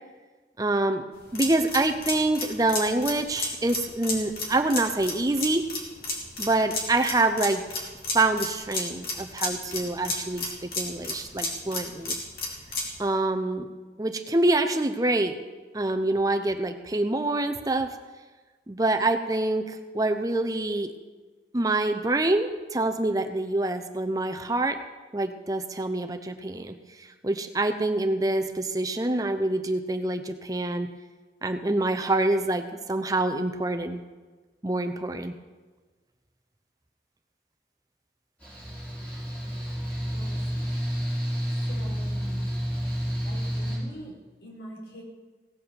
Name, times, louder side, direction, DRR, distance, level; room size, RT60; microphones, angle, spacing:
voice 1, 0.6-1.1 1.3-5.7 6.4-7.6 8.1-12.2 13.0-13.7 14.0-15.4 15.7-17.9 18.7-20.9 21.5-24.8 25.1-30.9 31.4-34.0 34.6-35.3, right 2 dB, 20° right, 7 dB, 0.7 m, -26 dB
sound 1, 1.1-13.0, left 2 dB, 55° left, 3.0 m, -33 dB
Mechanical fan, 38.4-43.8, equal, 10° left, 5.4 m, -30 dB
voice 2, 39.3-39.7 40.1-40.7 41.7-42.5 43.2-45.0, equal, 75° left, -2 dB, 4.3 m, -44 dB
17.0 x 8.3 x 7.0 m, 1.3 s
head